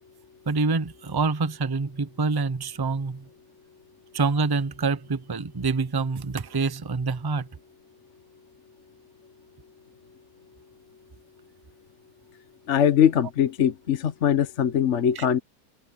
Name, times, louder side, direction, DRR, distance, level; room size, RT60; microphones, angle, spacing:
voice 1, 0.5-3.2 4.1-7.5 15.2-15.3, right 4 dB, 40° right, 0.3 m, -26 dB
voice 2, 12.7-15.4, left 9 dB, 50° left, 1.2 m, -21 dB
open air
omnidirectional pair, 1.7 m